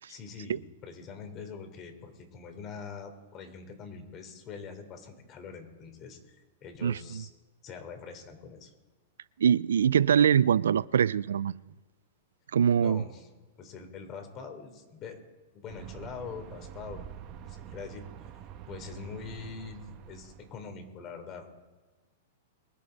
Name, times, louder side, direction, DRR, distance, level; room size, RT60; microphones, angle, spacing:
voice 1, 0.1-7.3 7.6-8.7 12.8-13.3 13.6-15.2 15.5-18.0 18.7-21.5, left 5 dB, 35° left, 3.2 m, -44 dB
voice 2, 6.8-7.2 9.4-11.6 12.5-13.0, right 8 dB, 85° right, 0.4 m, -24 dB
sound 1, 15.7-20.7, right 9 dB, 40° right, 1.7 m, -46 dB
23.5 x 10.5 x 4.0 m
hypercardioid pair, 125°, 0 cm